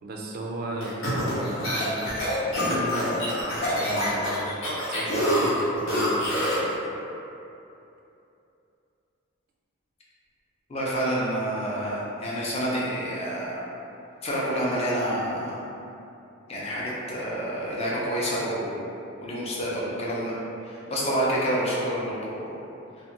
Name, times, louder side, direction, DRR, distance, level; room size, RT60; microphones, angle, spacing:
voice 1, 0.0-4.4 4.9-6.7, right 1 dB, 45° right, -1 dB, 0.3 m, -35 dB
sound 1, 0.8-6.7, equal, 80° left, 0.8 m, -26 dB
voice 2, 10.7-13.6 14.2-15.6 16.5-18.8 19.2-20.3 20.6-22.4, equal, 30° left, -6 dB, 0.5 m, -28 dB
2.4 x 2.3 x 2.9 m, 2.8 s
head